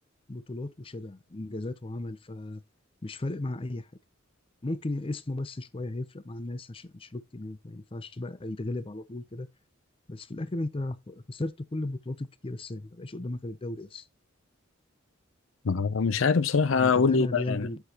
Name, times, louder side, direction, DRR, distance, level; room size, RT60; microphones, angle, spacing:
voice 1, 0.3-2.6 3.0-3.9 4.6-9.5 10.1-14.1 16.7-17.8, left 2 dB, 30° left, 0.6 m, -35 dB
voice 2, 15.6-17.7, left 5 dB, 70° left, 0.5 m, -24 dB
8.0 x 7.0 x 2.9 m
head